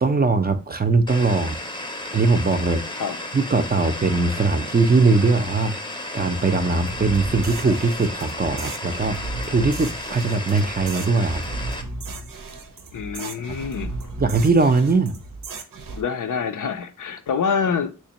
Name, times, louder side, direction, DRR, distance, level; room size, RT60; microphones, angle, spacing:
voice 1, 0.0-1.6 2.1-2.8 3.3-5.8 6.1-9.2 9.5-11.4 13.2-13.4 14.2-15.2, right 3 dB, 30° right, 0.4 m, -20 dB
sound 1, 1.1-11.8, left 1 dB, 15° left, 0.6 m, -33 dB
sound 2, 6.9-16.0, right 2 dB, 85° right, 0.6 m, -35 dB
voice 2, 12.9-14.0 16.0-17.9, left 6 dB, 70° left, 0.5 m, -26 dB
3.5 x 3.2 x 2.8 m
wide cardioid pair, 90°, 32 cm